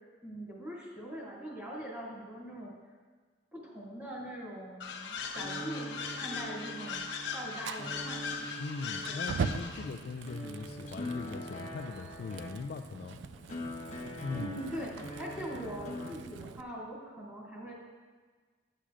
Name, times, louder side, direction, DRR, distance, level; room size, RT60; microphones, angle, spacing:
voice 1, 0.2-2.7 3.5-8.2 9.1-9.3 14.3-17.7, right 1 dB, 10° right, -8 dB, 2.5 m, -42 dB
sound 1, 4.8-10.0, left 5 dB, 85° left, 0.9 m, -39 dB
sound 2, 5.3-16.1, equal, 40° left, 1.0 m, -44 dB
Fire, 7.6-16.6, right 5 dB, 80° right, 0.4 m, -42 dB
voice 2, 8.6-13.2 14.2-14.5, left 4 dB, 55° left, 4 dB, 0.3 m, -40 dB
10.0 x 9.8 x 2.5 m, 1.5 s
head